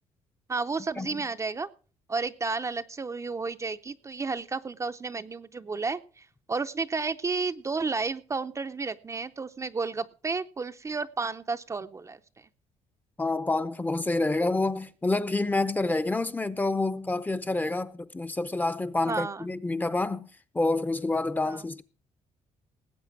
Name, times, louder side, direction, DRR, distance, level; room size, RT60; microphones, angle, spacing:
voice 1, 0.5-1.7 2.1-12.5 19.1-19.5 21.4-21.6, right 4 dB, 25° right, 0.6 m, -32 dB
voice 2, 13.2-20.3 20.5-21.8, left 2 dB, 15° left, 0.7 m, -28 dB
19.0 x 8.3 x 4.7 m
cardioid pair, 115°, 13 cm